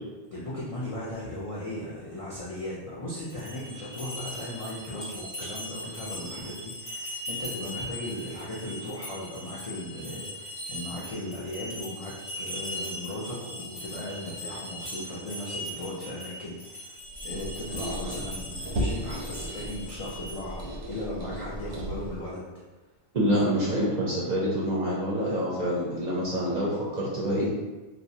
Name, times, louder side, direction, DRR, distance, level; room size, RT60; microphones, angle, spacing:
voice 1, 0.3-16.9 17.2-22.5 23.2-23.7, left 1 dB, 65° left, -7 dB, 0.3 m, -37 dB
sound 1, 3.2-20.6, equal, 30° left, 0.7 m, -39 dB
Squeak, 17.1-22.3, equal, 90° right, 1.0 m, -35 dB
voice 2, 23.1-27.5, equal, 50° right, -6 dB, 0.5 m, -26 dB
2.5 x 2.0 x 2.6 m, 1.2 s
omnidirectional pair, 1.2 m